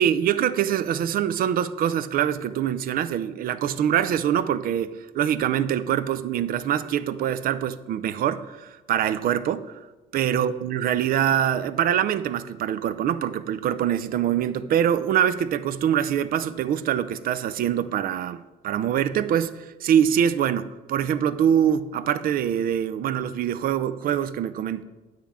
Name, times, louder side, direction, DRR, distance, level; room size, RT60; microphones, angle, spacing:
voice 1, 0.0-9.7 10.1-24.8, right 9 dB, 60° right, 14 dB, 0.5 m, -24 dB
9.4 x 8.6 x 3.5 m, 1.2 s
cardioid pair, 110°, 17 cm